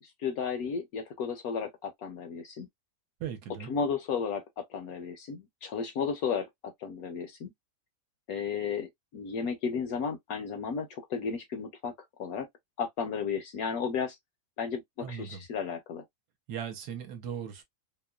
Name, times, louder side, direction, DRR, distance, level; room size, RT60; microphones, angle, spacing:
voice 1, 0.0-2.7 3.7-7.5 8.3-11.9 12.2-12.5 12.8-14.2 14.6-16.0, left 6 dB, 70° left, 0.9 m, -34 dB
voice 2, 3.2-3.7 15.0-15.4 16.5-17.6, right 8 dB, 70° right, 1.2 m, -38 dB
2.9 x 2.1 x 2.2 m
omnidirectional pair, 1.9 m